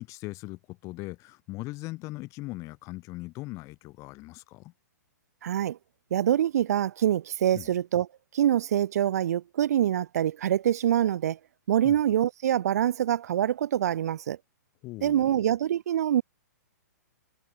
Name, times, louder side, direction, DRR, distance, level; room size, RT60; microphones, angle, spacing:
voice 1, 0.0-4.7 7.5-7.7 11.8-12.0 14.8-15.4, left 21 dB, 30° left, 3.7 m, -39 dB
voice 2, 5.4-5.8 6.1-8.1 8.3-11.4 11.7-14.4 15.0-16.2, right 11 dB, 60° right, 4.3 m, -25 dB
hypercardioid pair, 120°, 10 cm